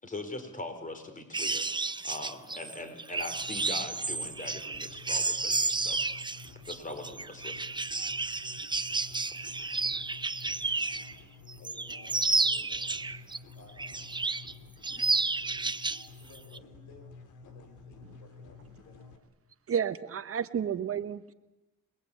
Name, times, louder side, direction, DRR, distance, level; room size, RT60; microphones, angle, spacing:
voice 1, 0.0-6.0 6.7-7.6 9.2-9.4, left 2 dB, 25° left, 8 dB, 4.5 m, -41 dB
sound 1, 1.3-11.1 11.5-13.4 13.8-14.5 14.8-16.1 16.3-16.6, right 3 dB, 15° right, 0.9 m, -31 dB
sound 2, 3.2-19.2, left 4 dB, 85° left, 3.2 m, -51 dB
voice 2, 11.1-13.1 13.5-14.2 16.1-17.2 17.4-19.2, left 3 dB, 70° left, 5 dB, 7.4 m, -57 dB
voice 3, 19.7-21.3, right 8 dB, 50° right, 12 dB, 1.2 m, -31 dB
27.5 x 21.0 x 8.6 m, 1.0 s
cardioid pair, 90°, 30 cm